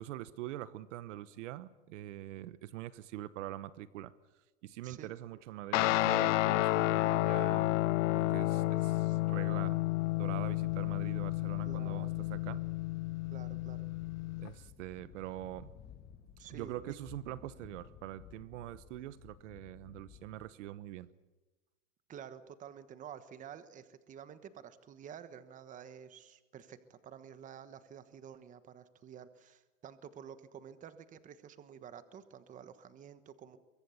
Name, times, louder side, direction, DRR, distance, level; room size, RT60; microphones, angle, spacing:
voice 1, 0.0-4.1 4.6-7.7 8.1-9.8 10.2-12.6 14.4-15.7 16.5-21.1, right 14 dB, 65° right, 1.1 m, -44 dB
Guitar, 5.7-14.5, left 18 dB, 65° left, 0.7 m, -31 dB
sound 1, 10.4-20.5, left 8 dB, 25° left, 2.1 m, -55 dB
voice 2, 11.7-12.2 13.3-13.9 16.4-17.0 22.1-33.6, right 8 dB, 20° right, 1.2 m, -50 dB
24.0 x 23.0 x 7.1 m
supercardioid pair, 155°, 40 cm